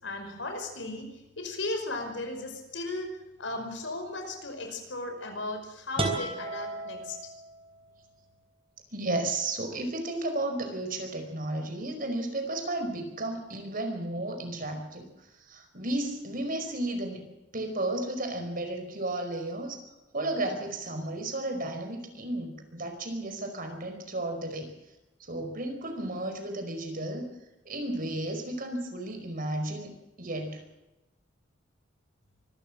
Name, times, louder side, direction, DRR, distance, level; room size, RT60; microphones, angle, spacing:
voice 1, 0.0-3.1 3.4-7.2, left 2 dB, 80° left, 5 dB, 5.4 m, -36 dB
sound 1, 6.0-7.9, right 2 dB, 30° right, 3.9 m, -34 dB
voice 2, 8.9-15.1 15.5-19.8 20.1-24.7 25.3-27.2 27.6-30.6, right 2 dB, 50° right, 6 dB, 5.0 m, -33 dB
25.0 x 14.0 x 7.6 m, 0.96 s
head